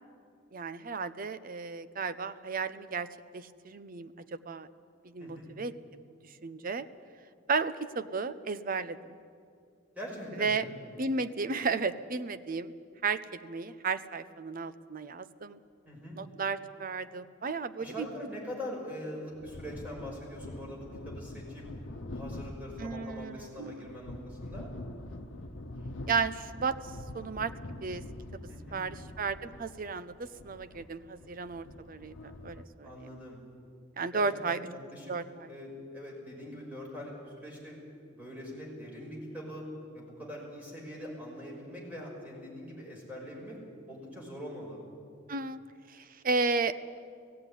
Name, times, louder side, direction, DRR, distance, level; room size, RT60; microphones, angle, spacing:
voice 1, 0.5-3.1 3.3-4.7 5.0-5.7 6.4-6.8 7.5-9.2 10.4-10.7 11.0-12.7 13.0-15.6 16.2-18.1 22.8-23.9 26.1-26.8 27.1-27.5 27.8-28.0 28.7-33.1 34.0-34.6 35.1-35.5 45.3-45.6 45.9-47.0, right 4 dB, 45° right, 13 dB, 0.7 m, -34 dB
voice 2, 5.2-5.5 10.0-10.7 15.8-16.2 17.8-21.6 22.1-24.7 28.5-28.8 32.8-33.4 34.1-35.1 35.5-37.8 38.1-39.6 39.9-43.6 43.9-44.8, equal, 10° right, -3 dB, 5.8 m, -43 dB
sound 1, 19.3-32.6, left 1 dB, 80° left, 1.0 m, -44 dB
17.0 x 15.5 x 10.0 m, 2.3 s
head